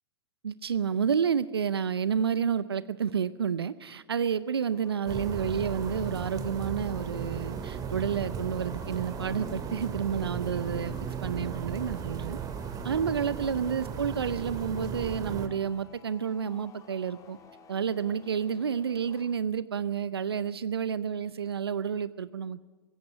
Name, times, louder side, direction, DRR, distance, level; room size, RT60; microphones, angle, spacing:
voice 1, 0.4-10.9 11.2-12.4 12.8-17.4 17.7-22.6, right 7 dB, 85° right, 16 dB, 0.6 m, -30 dB
sound 1, 4.7-19.3, left 5 dB, 25° left, 3.5 m, -55 dB
sound 2, 5.1-15.5, right 6 dB, 30° right, 2.3 m, -36 dB
24.5 x 15.5 x 10.0 m, 1.3 s
hypercardioid pair, 100°, 13 cm